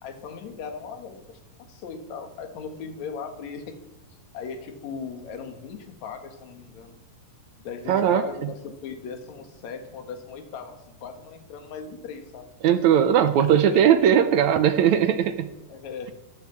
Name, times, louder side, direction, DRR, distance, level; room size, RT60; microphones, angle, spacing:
voice 1, 0.0-1.4 1.7-3.8 4.1-7.0 7.6-12.5 13.2-13.8 15.7-16.1, left 6 dB, 60° left, 5 dB, 2.7 m, -38 dB
voice 2, 7.9-8.5 12.6-15.5, right 9 dB, 75° right, 10 dB, 1.8 m, -19 dB
15.5 x 10.5 x 7.2 m, 0.91 s
omnidirectional pair, 4.0 m